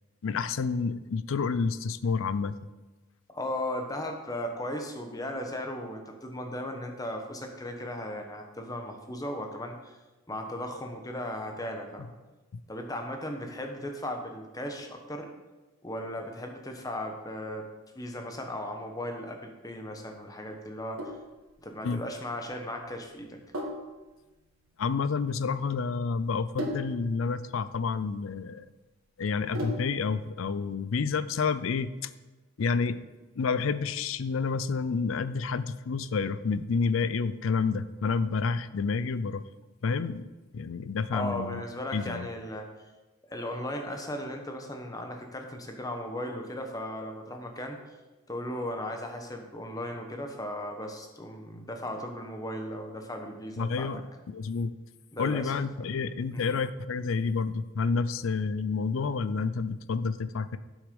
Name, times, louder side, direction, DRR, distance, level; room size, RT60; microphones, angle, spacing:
voice 1, 0.2-2.6 12.5-12.6 21.8-22.0 24.8-28.6 29.2-32.1 32.6-33.0 33.4-39.4 39.8-40.3 40.5-41.6 41.9-42.3 53.6-54.0 54.3-54.7 55.2-60.6, left 5 dB, 75° left, 15 dB, 0.4 m, -29 dB
voice 2, 3.3-10.0 10.3-12.1 12.7-15.3 15.8-17.7 17.9-21.2 21.6-23.4 41.1-42.7 43.3-47.8 48.3-53.9 55.1-55.5 56.3-56.5, left 1 dB, 15° left, 3 dB, 1.0 m, -36 dB
Sink (filling or washing), 21.0-30.1, equal, 85° right, 1.6 m, -40 dB
8.2 x 6.3 x 5.2 m, 1.2 s
head